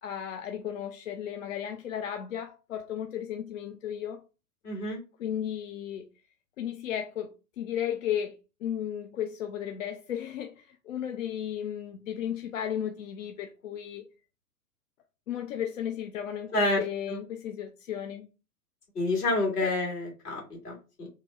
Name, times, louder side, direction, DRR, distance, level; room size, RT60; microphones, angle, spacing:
voice 1, 0.0-4.2 5.2-6.0 6.6-8.3 8.6-14.0 15.3-18.3 19.6-19.7, left 9 dB, 55° left, 0.5 m, -34 dB
voice 2, 4.6-5.0 16.5-16.8 17.1-17.2 19.0-21.1, left 2 dB, 70° left, 2.1 m, -28 dB
4.0 x 2.1 x 3.9 m
figure-of-eight pair, 105°, 48 cm